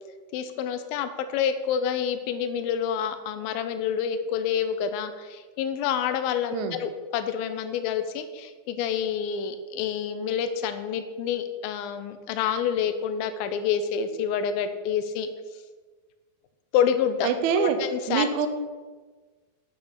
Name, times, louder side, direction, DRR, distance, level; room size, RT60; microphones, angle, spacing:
voice 1, 0.3-15.3 16.7-17.3 17.6-18.3, left 8 dB, 80° left, 9 dB, 2.4 m, -28 dB
voice 2, 17.2-17.8 18.1-18.5, right 7 dB, 80° right, 8 dB, 1.7 m, -24 dB
8.5 x 6.1 x 6.7 m, 1.4 s
omnidirectional pair, 4.5 m